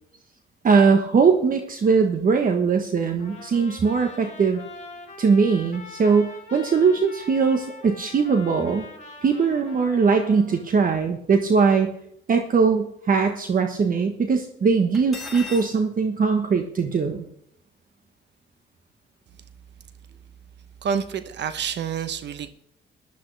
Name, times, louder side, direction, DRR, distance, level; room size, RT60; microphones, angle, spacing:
voice 1, 0.6-4.6 5.2-8.9 9.2-11.9 12.3-17.3, right 5 dB, 45° right, 5 dB, 1.3 m, -20 dB
Trumpet, 3.2-10.7, left 3 dB, 40° left, 4.4 m, -43 dB
Cutlery silverware, 14.9-15.7, left 3 dB, ahead, 6.2 m, -36 dB
voice 2, 20.8-22.5, right 7 dB, 65° right, 11 dB, 0.9 m, -28 dB
14.5 x 12.5 x 3.4 m, 0.72 s
cardioid pair, 90°, 20 cm